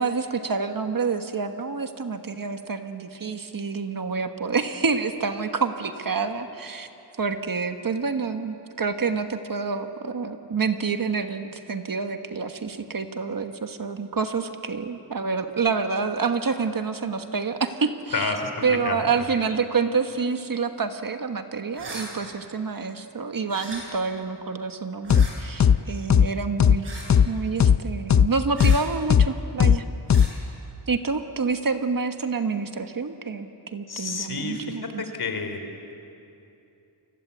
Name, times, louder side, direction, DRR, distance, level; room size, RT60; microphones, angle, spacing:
voice 1, 0.0-6.9 7.2-18.3 18.6-26.9 27.2-29.8 30.2-30.3 30.9-35.0, right 5 dB, 50° right, 7 dB, 1.4 m, -28 dB
voice 2, 18.1-19.3 33.9-35.6, left 4 dB, 60° left, 6 dB, 3.3 m, -30 dB
sound 1, 21.7-22.1 23.5-23.8 25.0-25.3 26.8-27.1 28.5-28.8 30.1-30.3, right 3 dB, 65° right, 8.0 m, -38 dB
sound 2, 25.1-25.3 25.6-25.8 26.1-26.3 26.6-26.8 27.1-27.3 27.6-27.8 28.1-28.3 28.6-28.8 29.1-29.3 29.6-29.8 30.1-30.3, left 8 dB, 40° left, 0.6 m, -16 dB
30.0 x 24.5 x 8.2 m, 2.8 s
wide cardioid pair, 155°, 43 cm